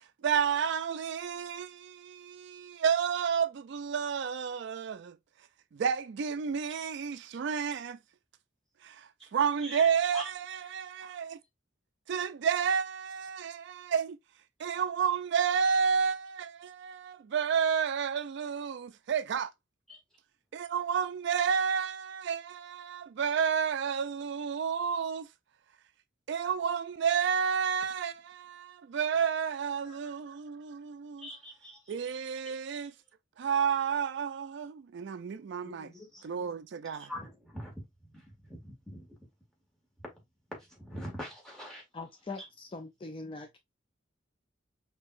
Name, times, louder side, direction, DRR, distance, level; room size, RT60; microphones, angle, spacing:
voice 1, 0.2-5.1 5.7-8.0 8.8-11.4 12.1-14.2 14.6-19.5 20.5-25.3 26.3-31.3 31.9-32.9 33.4-35.9 36.2-37.1, right 7 dB, 65° right, 0.3 m, -31 dB
voice 2, 9.6-10.9 19.9-20.0 29.8-30.4 31.2-32.7 35.6-36.6 36.8-39.3 40.0-40.2 40.5-41.8 42.4-42.5, equal, 5° left, 2.0 m, -45 dB
voice 3, 41.9-43.6, left 3 dB, 25° left, 0.4 m, -42 dB
5.5 x 2.9 x 2.4 m
head